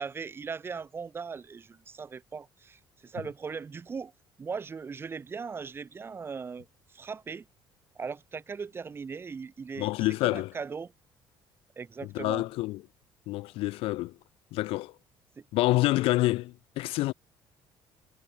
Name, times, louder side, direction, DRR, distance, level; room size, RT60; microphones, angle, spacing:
voice 1, 0.0-4.1 4.4-6.7 6.9-7.4 7.9-9.9 10.2-10.9 11.8-12.4 15.4-15.5, right 5 dB, 25° right, 3.2 m, -38 dB
voice 2, 9.8-10.5 12.0-12.8 13.3-14.2 14.5-14.9 15.5-17.1, left 19 dB, 90° left, 1.2 m, -27 dB
cardioid pair, 150°, 9 cm